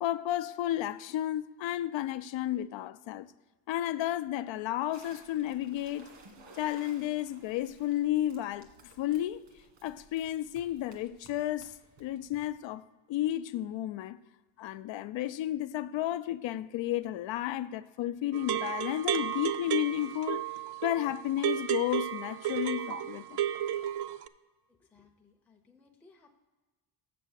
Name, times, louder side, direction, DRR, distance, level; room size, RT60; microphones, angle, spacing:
voice 1, 0.0-3.3 3.7-6.1 6.6-8.7 9.0-9.4 9.8-14.2 14.6-20.4 20.8-23.4, left 13 dB, 90° left, 0.5 m, -32 dB
sound 1, 4.9-12.6, right 3 dB, 90° right, 1.9 m, -57 dB
sound 2, 18.3-24.3, right 11 dB, 70° right, 0.5 m, -33 dB
voice 2, 24.7-26.4, left 4 dB, 5° left, 0.5 m, -62 dB
7.5 x 6.8 x 6.3 m
wide cardioid pair, 170°, 43 cm